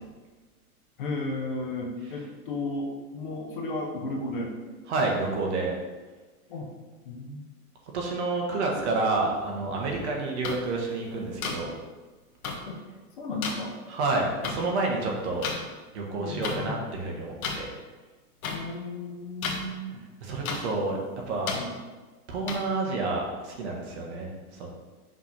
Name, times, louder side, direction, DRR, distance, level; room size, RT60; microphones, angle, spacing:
voice 1, 1.0-4.5 6.5-6.7 7.0-7.5 12.6-12.8 13.2-13.8 16.2-16.8 18.5-20.0 21.5-21.8, left 2 dB, 35° left, 1 dB, 0.7 m, -34 dB
voice 2, 4.9-5.7 7.9-11.7 13.9-15.4 15.9-17.7 20.2-21.0 21.3-21.5 22.3-24.7, right 3 dB, 45° right, -1 dB, 1.4 m, -29 dB
sound 1, 10.4-10.5 11.4-11.5 12.4-12.5 13.4-13.5 14.4-14.5 15.4-15.6 16.4-16.6 17.4-17.6 18.4-18.6 19.4-19.6 20.4-20.6 21.5-21.6 22.5-22.6, left 6 dB, 65° left, 1.4 m, -31 dB
5.9 x 3.4 x 5.9 m, 1.3 s
hypercardioid pair, 170°, 45 cm